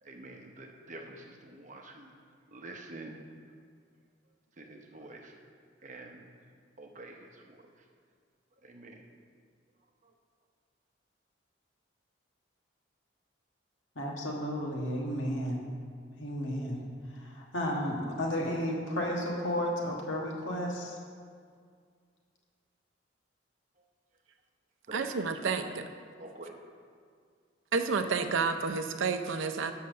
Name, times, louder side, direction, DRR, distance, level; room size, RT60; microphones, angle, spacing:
voice 1, 0.0-2.1 2.5-3.2 4.6-5.3 5.8-6.3 6.8-7.8 8.6-9.1 10.0-10.1 24.9-25.6 26.2-26.6, right 2 dB, 40° right, 2 dB, 0.8 m, -47 dB
voice 2, 13.9-15.6 16.2-16.8 17.1-21.0, equal, 80° left, -2 dB, 1.5 m, -33 dB
voice 3, 24.9-25.6 27.7-29.7, right 5 dB, 85° right, 8 dB, 0.5 m, -30 dB
6.7 x 5.7 x 6.4 m, 2.1 s
head